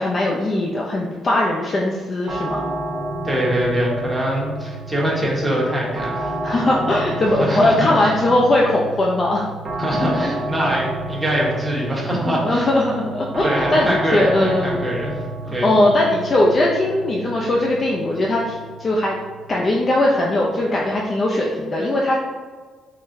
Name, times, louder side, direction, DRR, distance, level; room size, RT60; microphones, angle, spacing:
voice 1, 0.0-2.6 6.4-9.5 12.4-14.9 15.5-19.2 19.5-22.2, left 1 dB, 40° left, -2 dB, 0.4 m, -19 dB
sound 1, 2.3-21.2, right 2 dB, 50° right, 0.6 m, -31 dB
voice 2, 3.2-6.3 7.4-8.2 9.8-12.7 13.4-15.2 15.5-15.7, equal, 10° right, -5 dB, 1.0 m, -23 dB
3.8 x 2.1 x 2.6 m, 1.4 s
supercardioid pair, 70°, 0 cm